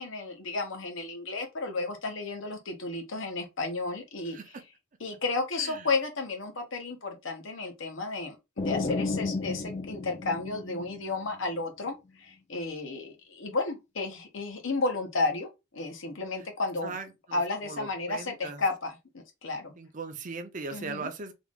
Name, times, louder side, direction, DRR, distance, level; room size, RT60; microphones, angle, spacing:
voice 1, 0.0-4.4 5.0-16.9 17.3-19.7 20.7-21.1, left 3 dB, 75° left, 1.0 m, -33 dB
sound 1, 8.6-11.4, left 3 dB, 35° left, 0.4 m, -32 dB
voice 2, 16.8-18.6 19.8-21.3, right 4 dB, 40° right, 0.5 m, -39 dB
3.5 x 2.4 x 3.6 m
head